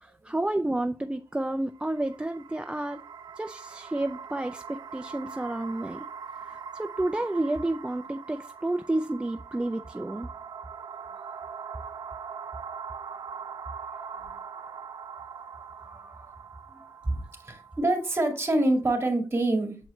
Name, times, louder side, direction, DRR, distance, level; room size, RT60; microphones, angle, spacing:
voice 1, 0.0-3.0 3.4-6.0 6.5-10.3 13.9-14.4 15.9-16.3, right 1 dB, 15° right, 0.4 m, -31 dB
sound 1, 1.6-18.8, right 6 dB, 70° right, 0.4 m, -42 dB
voice 2, 17.0-19.8, right 2 dB, 35° right, 2.2 m, -26 dB
7.6 x 4.7 x 3.1 m
wide cardioid pair, 90°, 7 cm